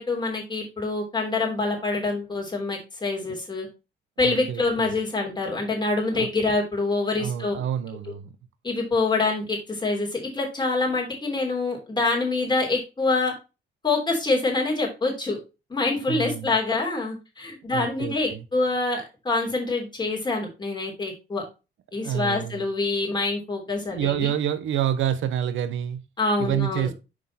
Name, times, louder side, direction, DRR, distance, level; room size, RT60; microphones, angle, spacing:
voice 1, 0.0-3.7 4.2-7.6 8.6-13.3 13.8-15.4 15.7-21.4 21.9-24.3 26.2-26.9, left 3 dB, 20° left, 3.2 m, -26 dB
voice 2, 4.2-4.9 6.1-6.3 7.2-8.3 16.1-16.5 17.7-18.4 21.9-22.6 23.9-26.0 26.4-26.9, right 10 dB, 75° right, 0.7 m, -28 dB
6.2 x 4.7 x 4.1 m
cardioid pair, 90°, 20 cm